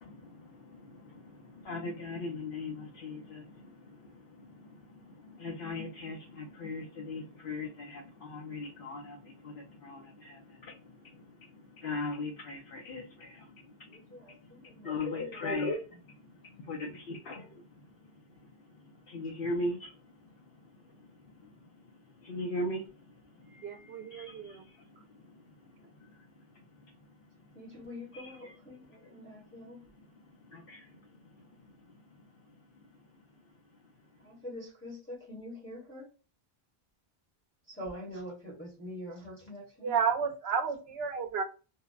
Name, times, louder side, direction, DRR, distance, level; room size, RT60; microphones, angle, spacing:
voice 1, 0.0-14.0 14.4-14.5 14.8-17.7 18.4-20.1 20.5-20.7 21.2-21.6 22.2-23.0 23.4-23.6 24.1-25.4 25.8-26.5 26.7-26.8 28.1-28.5 29.0-29.3 30.0-30.1 30.5-30.9 31.3-31.4 31.8-31.9, left 2 dB, 65° left, 0.8 m, -40 dB
voice 2, 13.9-15.5 16.5-17.0 23.4-24.3 27.5-29.8 34.2-36.1 37.7-39.9, left 1 dB, 10° left, 1.0 m, -45 dB
voice 3, 23.6-24.7 39.8-41.4, right 6 dB, 75° right, 0.8 m, -32 dB
2.7 x 2.0 x 2.3 m
omnidirectional pair, 1.1 m